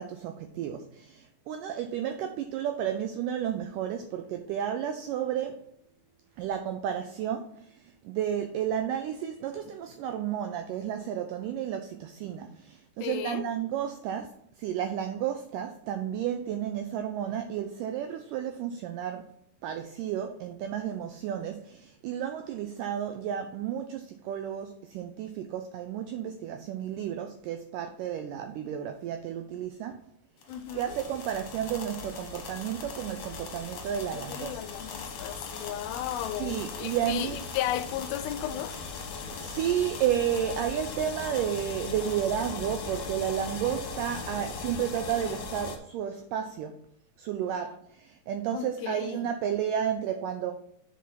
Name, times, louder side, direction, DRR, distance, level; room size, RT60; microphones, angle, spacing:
voice 1, 0.0-5.6 6.4-19.3 19.6-30.0 30.7-34.6 36.4-37.4 39.4-46.8 47.2-50.5, right 9 dB, 85° right, 1.9 m, -32 dB
voice 2, 13.0-13.4 30.5-31.0 34.1-38.8 48.5-49.2, left 12 dB, 80° left, 2.3 m, -35 dB
sound 1, 30.4-45.8, left 4 dB, 65° left, 1.7 m, -39 dB
7.5 x 4.2 x 5.4 m
omnidirectional pair, 4.4 m